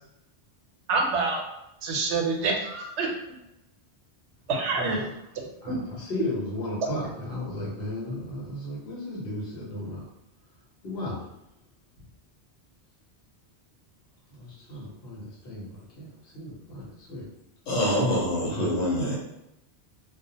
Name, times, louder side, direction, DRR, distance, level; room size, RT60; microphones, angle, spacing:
voice 1, 0.9-1.4 1.8-3.1 4.5-5.0 5.7-5.8, right 3 dB, 90° right, 1 dB, 0.9 m, -26 dB
voice 2, 4.8-5.1 5.6-10.0 10.8-11.2 14.3-17.3, left 1 dB, 60° left, -6 dB, 1.1 m, -35 dB
voice 3, 17.7-19.2, equal, 85° left, -4 dB, 1.0 m, -25 dB
2.3 x 2.0 x 2.7 m, 0.87 s
omnidirectional pair, 1.1 m